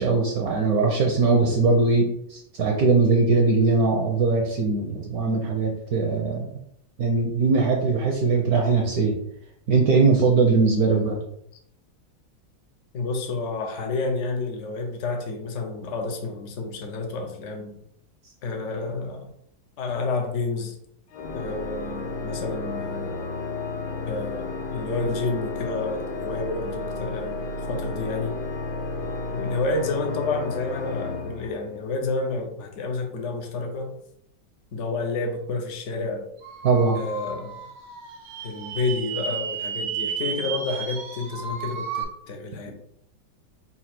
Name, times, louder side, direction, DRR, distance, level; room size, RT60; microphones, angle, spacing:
voice 1, 0.0-6.6 7.0-9.2 9.7-11.2 36.6-37.0, right 4 dB, 70° right, 1 dB, 0.9 m, -21 dB
voice 2, 12.9-17.7 18.4-19.3 19.8-20.7 21.3-23.3 24.1-28.4 29.3-33.9 34.7-36.3 37.0-37.5 38.4-42.7, left 3 dB, 70° left, 2 dB, 0.7 m, -30 dB
Organ, 21.1-32.1, left 3 dB, 90° left, 1.6 m, -32 dB
sound 1, 36.4-42.0, right 6 dB, 85° right, 1.6 m, -33 dB
4.1 x 2.4 x 4.3 m, 0.72 s
omnidirectional pair, 2.1 m